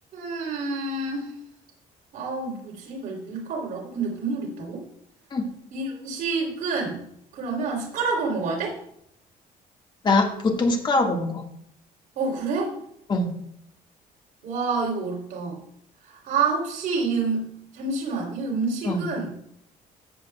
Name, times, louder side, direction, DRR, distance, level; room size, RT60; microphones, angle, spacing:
voice 1, 0.1-1.3 2.1-4.8 5.7-7.1 7.3-8.7 12.1-12.7 14.4-15.6 16.0-17.5 17.7-19.3, right 4 dB, 70° right, -1 dB, 3.3 m, -28 dB
voice 2, 10.0-11.4 13.1-13.3 18.8-19.1, left 2 dB, 30° left, 3 dB, 1.7 m, -23 dB
14.0 x 8.3 x 2.3 m, 0.71 s
cardioid pair, 125°, 15 cm